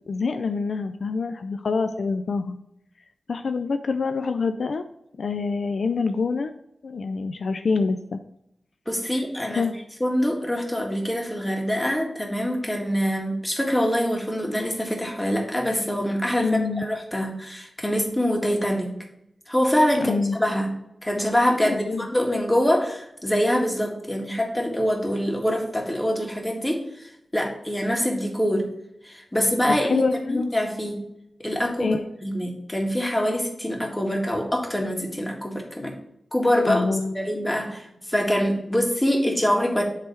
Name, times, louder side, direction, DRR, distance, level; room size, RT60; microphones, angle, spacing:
voice 1, 0.1-2.6 3.3-4.8 5.2-6.5 6.8-8.2 9.5-9.7 16.4-16.8 20.0-20.4 21.6-22.1 29.7-30.5 31.8-32.0 36.7-37.3, left 4 dB, 75° left, 8 dB, 0.4 m, -26 dB
voice 2, 8.9-9.7 10.0-16.5 16.8-18.9 19.5-20.7 21.0-27.1 27.3-28.7 29.0-31.0 31.4-35.9 36.3-36.8 37.1-39.8, equal, 15° left, 1 dB, 1.8 m, -24 dB
8.0 x 3.4 x 4.5 m, 0.78 s
cardioid pair, 50°, 0 cm